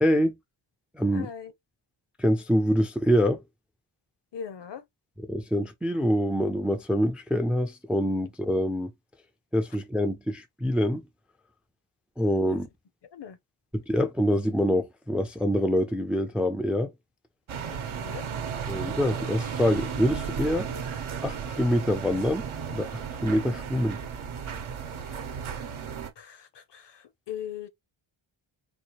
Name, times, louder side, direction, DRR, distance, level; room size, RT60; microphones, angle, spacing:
voice 1, 0.0-0.3 0.9-1.3 2.2-3.4 5.2-8.9 9.5-11.0 12.2-12.7 13.7-16.9 18.7-20.7 21.2-24.0, equal, 5° right, 0.3 m, -25 dB
voice 2, 1.1-1.5 4.3-4.8 12.4-12.7 13.1-13.4 17.7-18.2 26.2-27.7, left 8 dB, 60° left, 0.7 m, -40 dB
sound 1, 17.5-26.1, right 7 dB, 80° right, 0.9 m, -34 dB
4.1 x 2.4 x 2.9 m
wide cardioid pair, 155°, 48 cm